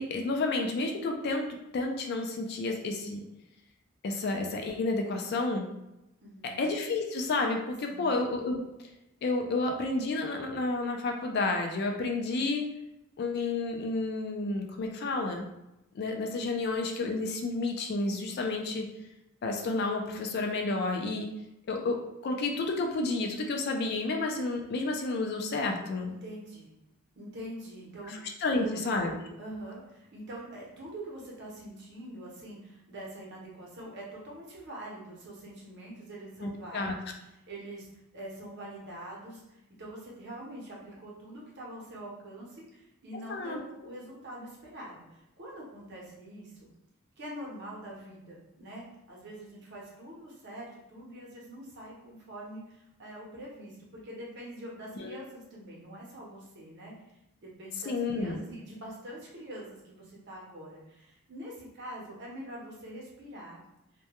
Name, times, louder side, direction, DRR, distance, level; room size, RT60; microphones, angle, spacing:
voice 1, 0.0-3.2 4.0-5.7 6.4-8.6 9.2-12.7 13.2-15.5 15.9-18.9 19.4-21.3 21.7-26.1 28.1-29.1 36.4-36.9 43.3-43.6 54.9-55.2 57.9-58.4, left 3 dB, 50° left, 2 dB, 0.3 m, -31 dB
voice 2, 6.2-6.6 7.9-8.2 26.1-26.7 27.2-28.2 28.5-28.9 29.4-37.9 38.1-46.7 47.2-56.9 57.4-63.6, right 1 dB, 55° right, -4 dB, 0.7 m, -44 dB
2.2 x 2.1 x 2.8 m, 0.90 s
head